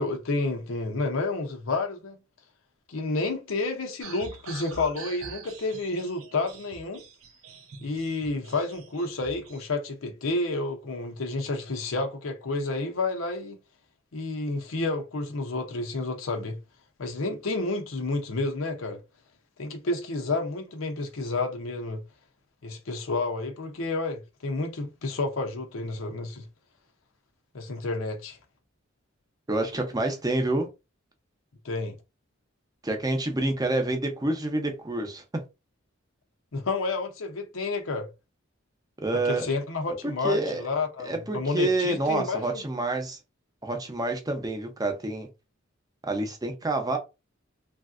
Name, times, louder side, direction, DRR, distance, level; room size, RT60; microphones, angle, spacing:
voice 1, 0.0-2.2 2.9-7.0 7.8-13.6 14.1-16.6 17.0-19.0 19.6-22.0 22.6-26.4 27.5-28.4 31.6-31.9 36.5-38.1 39.1-42.6, left 3 dB, 75° left, 0.6 m, -30 dB
sound 1, 4.0-9.7, right 5 dB, 85° right, 0.7 m, -45 dB
voice 2, 29.5-30.7 32.8-35.2 39.0-39.4 40.2-40.6 41.0-43.2 43.6-45.3 46.1-47.0, right 2 dB, 20° right, 0.6 m, -27 dB
3.2 x 2.5 x 2.4 m
head